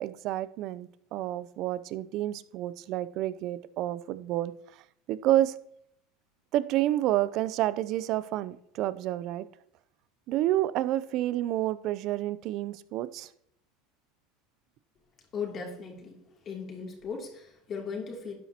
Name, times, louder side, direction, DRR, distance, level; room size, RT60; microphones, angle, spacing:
voice 1, 0.0-4.5 5.1-5.5 6.5-9.5 10.3-13.3, right 14 dB, 55° right, 0.6 m, -29 dB
voice 2, 15.3-16.2 16.4-18.3, left 5 dB, 40° left, 2.9 m, -37 dB
12.0 x 10.5 x 3.0 m
hypercardioid pair, 85°, 0 cm